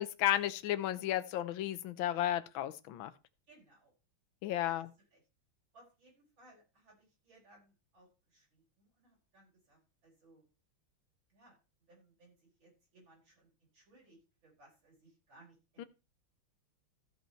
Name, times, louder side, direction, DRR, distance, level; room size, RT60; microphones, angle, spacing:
voice 1, 0.0-3.1 4.4-4.9 15.8-15.9, left 12 dB, 75° left, 13 dB, 1.6 m, -33 dB
voice 2, 3.5-3.9 4.6-5.2 5.7-10.4 11.3-15.9, right 2 dB, 70° right, -3 dB, 5.4 m, -64 dB
14.5 x 5.5 x 4.4 m, 0.29 s
omnidirectional pair, 2.3 m